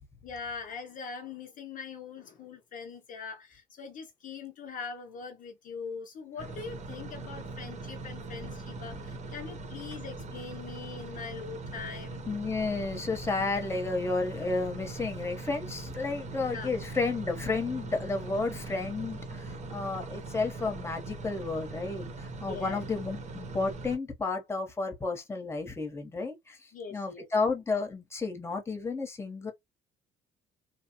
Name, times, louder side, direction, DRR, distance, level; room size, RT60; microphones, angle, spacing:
voice 1, 0.2-12.3 16.4-16.7 22.5-22.8 26.7-27.3, left 5 dB, 50° left, 0.6 m, -42 dB
sound 1, 6.4-24.0, right 3 dB, 45° right, 0.9 m, -41 dB
voice 2, 12.3-22.1 22.4-26.6 26.9-29.5, left 3 dB, 15° left, 0.9 m, -32 dB
2.9 x 2.0 x 2.8 m
cardioid pair, 110°, 17 cm